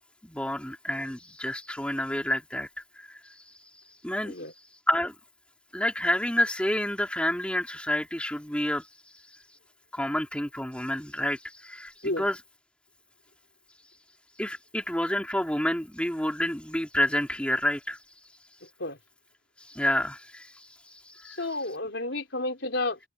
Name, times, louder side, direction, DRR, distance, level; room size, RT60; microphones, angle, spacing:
voice 1, 0.2-2.7 2.9-3.4 4.0-4.3 4.9-5.1 5.7-8.9 9.9-12.4 14.4-18.0 19.7-21.4, left 1 dB, 5° left, 3.0 m, -29 dB
voice 2, 21.2-23.0, left 2 dB, 70° left, 4.0 m, -31 dB
head